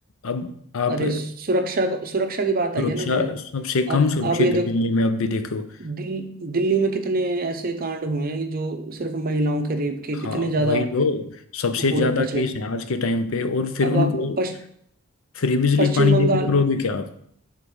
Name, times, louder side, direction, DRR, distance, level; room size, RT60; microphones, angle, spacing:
voice 1, 0.2-1.2 2.8-5.7 10.2-14.4 15.4-17.1, left 4 dB, 80° left, 0.6 m, -23 dB
voice 2, 0.9-3.3 3.9-4.7 5.8-10.9 11.8-12.5 13.8-14.6 15.8-16.5, right 2 dB, 45° right, 0.7 m, -25 dB
7.0 x 3.7 x 4.7 m
head